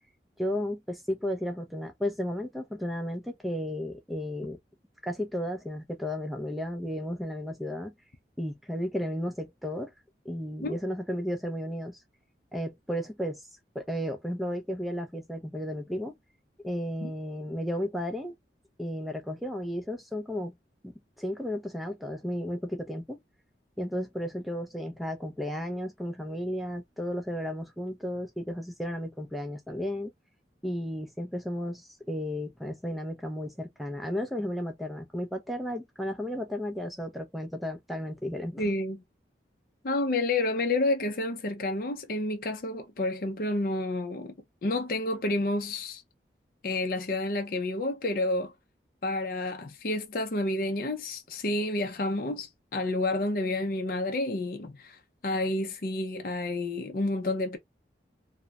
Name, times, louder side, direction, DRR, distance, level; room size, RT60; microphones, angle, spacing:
voice 1, 0.4-4.6 5.0-7.9 8.4-9.9 10.2-12.0 12.5-13.4 13.7-16.1 16.6-18.3 18.8-20.5 20.8-20.9 21.2-23.2 23.8-30.1 30.6-38.7, equal, ahead, 0.5 m, -33 dB
voice 2, 38.6-39.0 39.8-44.3 44.6-46.0 46.6-48.5 49.0-57.6, left 2 dB, 50° left, 0.5 m, -30 dB
2.9 x 2.1 x 2.3 m
head